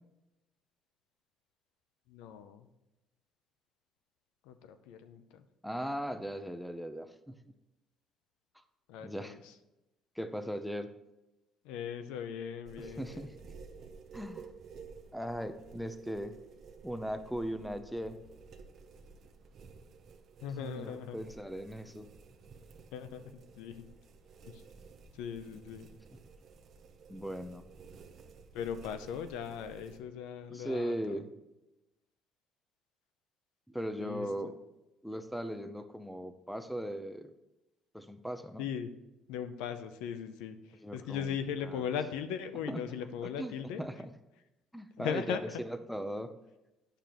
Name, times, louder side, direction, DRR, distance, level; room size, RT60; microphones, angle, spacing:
voice 1, 2.1-2.7 4.5-5.4 8.9-9.4 11.6-13.2 20.4-21.2 22.9-23.9 24.5-24.6 25.1-25.9 28.5-31.2 34.0-34.5 38.6-38.9 39.3-43.8 45.0-45.4, left 8 dB, 90° left, 10 dB, 0.6 m, -39 dB
voice 2, 5.6-7.5 8.5-8.6 9.0-9.4 10.2-10.9 12.8-13.4 14.1-14.5 15.1-16.4 16.8-18.2 20.6-22.1 27.1-27.6 30.5-31.3 33.7-34.6 35.0-37.3 37.9-38.6 40.8-41.4 41.6-41.9 42.7-42.9 43.2-44.1 44.7-46.3, equal, ahead, 9 dB, 0.6 m, -38 dB
sound 1, 12.6-30.0, right 5 dB, 55° right, 0.8 m, -53 dB
9.0 x 6.8 x 3.0 m, 0.96 s
cardioid pair, 95°, 0 cm